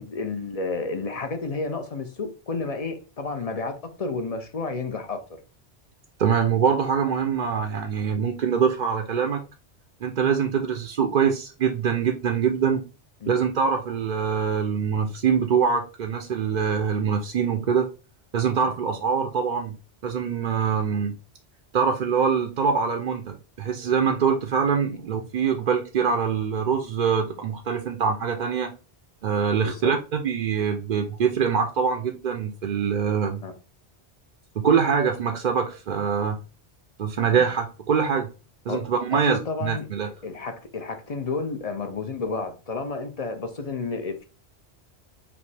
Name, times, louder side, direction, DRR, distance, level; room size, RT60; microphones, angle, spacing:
voice 1, 0.0-5.2 13.2-13.3 29.6-29.9 33.4-33.5 37.3-37.5 38.7-38.8 39.1-39.9 40.2-44.2, left 3 dB, 40° left, 0.6 m, -31 dB
voice 2, 6.2-9.4 10.0-12.8 13.3-17.9 18.3-19.8 20.0-21.1 21.7-28.7 29.2-33.4 34.6-36.4 37.0-38.3 38.7-40.1, right 6 dB, 55° right, 0.6 m, -24 dB
5.2 x 2.7 x 3.3 m
omnidirectional pair, 1.1 m